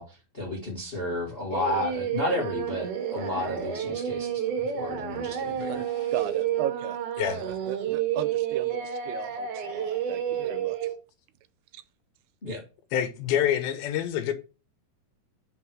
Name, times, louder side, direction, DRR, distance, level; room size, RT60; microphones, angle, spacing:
voice 1, 0.0-5.8 12.4-12.6, left 1 dB, 50° left, 0.6 m, -32 dB
Singing, 1.5-10.9, right 9 dB, 65° right, 2.3 m, -30 dB
voice 2, 5.7-7.0 7.4-10.8 11.7-11.8, right 11 dB, 90° right, 2.7 m, -36 dB
voice 3, 12.9-14.3, left 10 dB, 75° left, 2.5 m, -26 dB
5.9 x 4.5 x 6.0 m
omnidirectional pair, 4.5 m